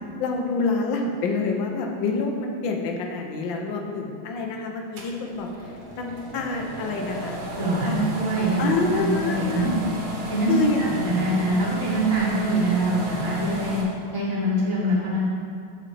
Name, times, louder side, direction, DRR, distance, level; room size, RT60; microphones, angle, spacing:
voice 1, 0.2-5.5 6.0-7.4 7.8-8.1 8.6-9.7 10.5-10.8, left 3 dB, 70° left, 2 dB, 1.5 m, -27 dB
sound 1, 5.0-13.8, equal, 85° right, 2.1 m, -33 dB
voice 2, 7.6-9.7 10.3-13.8 14.1-15.2, right 1 dB, 40° right, -9 dB, 2.5 m, -24 dB
11.0 x 5.0 x 3.3 m, 2.3 s
omnidirectional pair, 2.2 m